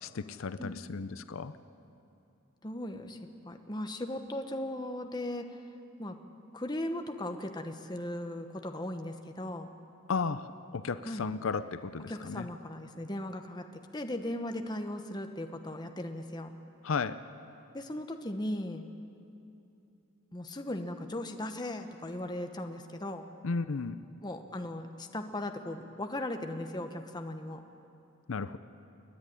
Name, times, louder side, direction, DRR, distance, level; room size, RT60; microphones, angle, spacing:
voice 1, 0.0-1.5 10.1-12.5 16.8-17.2 23.4-24.0 28.3-28.6, left 4 dB, 80° left, 12 dB, 0.6 m, -34 dB
voice 2, 2.6-5.5 6.0-6.2 6.5-9.7 11.0-11.3 12.1-16.5 17.7-18.9 20.3-23.2 24.2-27.6, left 1 dB, 20° left, 5 dB, 1.1 m, -37 dB
28.5 x 10.5 x 9.9 m, 2.7 s
head